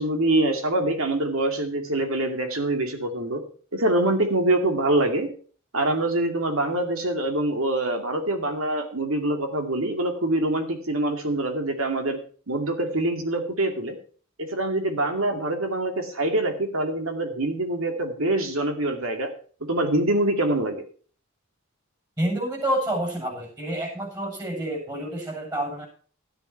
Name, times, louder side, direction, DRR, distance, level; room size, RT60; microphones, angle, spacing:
voice 1, 0.0-3.4 3.7-5.3 5.7-12.2 12.5-14.0 14.4-19.3 19.6-20.8, right 1 dB, 75° right, 4 dB, 2.4 m, -25 dB
voice 2, 22.2-25.9, right 1 dB, 20° right, 1 dB, 7.8 m, -28 dB
13.0 x 11.0 x 4.6 m, 0.43 s
head